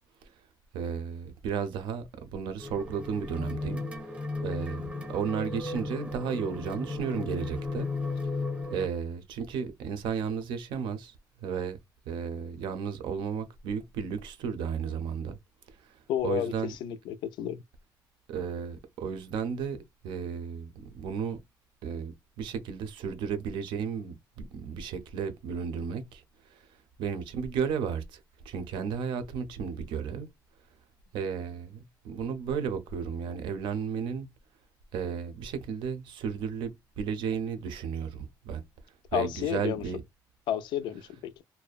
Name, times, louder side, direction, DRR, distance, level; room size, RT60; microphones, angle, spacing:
voice 1, 0.7-3.8 4.4-7.9 8.7-11.1 11.4-11.8 12.1-15.4 16.2-16.7 18.3-19.8 20.0-21.4 21.8-26.2 27.0-28.2 28.5-30.3 31.1-34.3 34.9-38.6 39.1-40.0, right 6 dB, 90° right, 0.6 m, -33 dB
sound 1, 2.6-8.9, left 3 dB, 15° right, 0.6 m, -35 dB
voice 2, 16.1-17.6 39.1-39.8 40.5-41.4, left 10 dB, 80° left, 0.4 m, -31 dB
2.6 x 2.1 x 2.3 m
cardioid pair, 165°, 8 cm